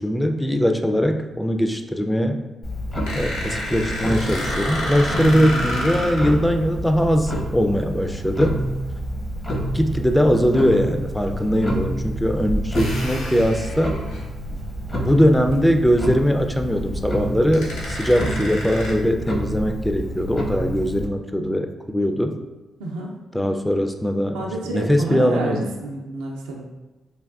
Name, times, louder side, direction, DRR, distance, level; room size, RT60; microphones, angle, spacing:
voice 1, 0.0-2.4 3.1-8.6 9.7-13.9 15.0-22.3 23.3-24.4 24.7-25.7, equal, 10° left, 5 dB, 0.3 m, -21 dB
Clock, 2.6-21.0, equal, 40° left, 0.7 m, -28 dB
sound 1, 3.0-6.3 8.5-8.7 10.4-10.5 11.4-11.5 12.7-14.6 15.1-15.2 15.5-15.6 17.1-17.2 17.5-18.9, left 1 dB, 90° left, 0.7 m, -30 dB
voice 2, 22.8-23.2 24.3-26.7, right 2 dB, 85° right, -1 dB, 0.4 m, -29 dB
3.3 x 2.3 x 2.3 m, 1.1 s
hypercardioid pair, 45°, 0 cm